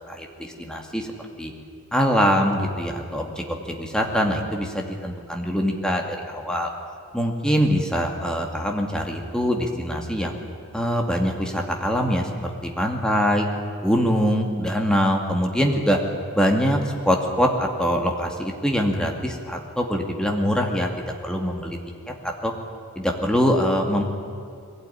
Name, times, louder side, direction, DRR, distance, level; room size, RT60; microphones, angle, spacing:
voice 1, 0.1-1.1 1.4-1.5 1.9-6.7 7.1-10.3 10.7-13.5 13.8-16.0 16.3-16.8 17.0-20.9 21.2-21.8 22.2-22.5 23.0-24.0, equal, 5° left, 2 dB, 2.3 m, -23 dB
22.0 x 17.0 x 10.0 m, 2.5 s
head